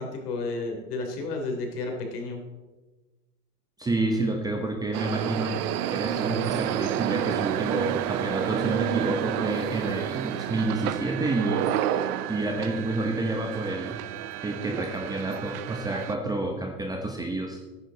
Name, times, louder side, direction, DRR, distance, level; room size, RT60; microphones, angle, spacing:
voice 1, 0.0-2.4, left 3 dB, 80° left, 3 dB, 3.3 m, -32 dB
voice 2, 3.8-5.6 5.9-11.7 12.3-14.0 14.4-17.6, right 2 dB, 10° right, 2 dB, 0.8 m, -29 dB
sound 1, 4.9-16.1, right 11 dB, 70° right, 0.8 m, -30 dB
14.0 x 9.9 x 4.0 m, 1.2 s
supercardioid pair, 140°, 46 cm